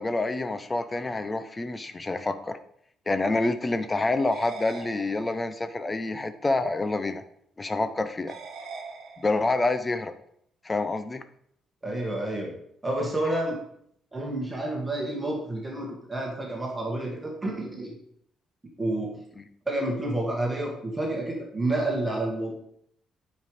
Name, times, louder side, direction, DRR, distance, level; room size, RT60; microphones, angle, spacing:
voice 1, 0.0-2.6 3.1-7.2 7.6-8.4 9.2-10.1 10.6-11.2 19.4-19.5, left 2 dB, 15° left, 11 dB, 0.6 m, -27 dB
sound 1, 4.3-5.7 8.3-9.7, right 4 dB, 55° right, 1.3 m, -42 dB
voice 2, 11.8-12.5 12.8-13.6 14.1-18.0 18.8-19.2 19.6-22.5, right 1 dB, 10° right, -1 dB, 1.6 m, -29 dB
9.2 x 5.3 x 4.9 m, 0.69 s
cardioid pair, 165°, 0 cm